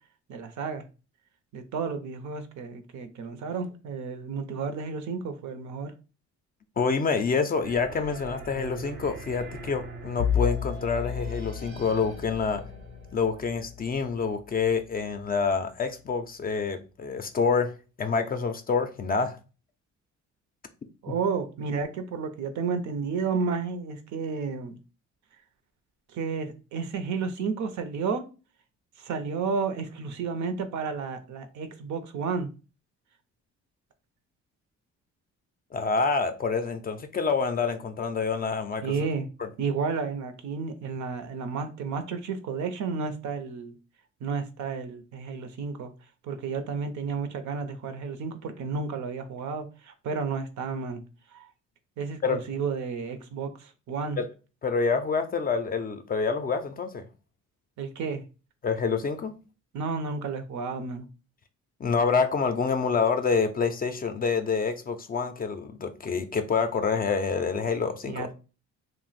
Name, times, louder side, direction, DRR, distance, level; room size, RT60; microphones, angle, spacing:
voice 1, 0.3-0.8 1.5-5.9 21.0-24.8 26.1-28.2 29.0-32.5 38.8-39.3 39.6-43.7 44.2-45.9 46.2-51.0 51.3-51.5 52.0-54.2 57.8-58.2 59.7-61.1 68.1-68.3, right 5 dB, 70° right, 0.6 m, -32 dB
voice 2, 6.8-12.6 13.1-17.7 18.0-19.4 21.1-21.2 35.7-38.9 39.4-39.5 52.2-52.4 54.2-54.3 54.6-57.0 58.6-59.3 61.8-68.3, left 5 dB, 30° left, 0.4 m, -27 dB
sound 1, 7.6-14.4, right 2 dB, 90° right, 1.1 m, -43 dB
Bowed string instrument, 10.2-15.3, left 9 dB, 90° left, 0.5 m, -33 dB
2.5 x 2.0 x 3.9 m
cardioid pair, 90°, 30 cm